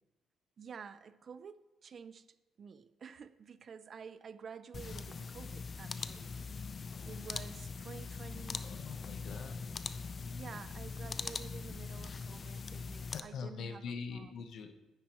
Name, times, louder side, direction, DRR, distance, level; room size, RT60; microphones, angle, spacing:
voice 1, 0.6-2.3 2.6-6.4 7.1-8.7 10.2-14.4, right 6 dB, 40° right, 0.4 m, -50 dB
sound 1, 4.7-13.2, left 5 dB, 35° left, 0.4 m, -42 dB
voice 2, 8.6-9.7 13.1-14.7, left 5 dB, 65° left, 0.9 m, -43 dB
10.0 x 9.3 x 3.0 m
cardioid pair, 125°, 0 cm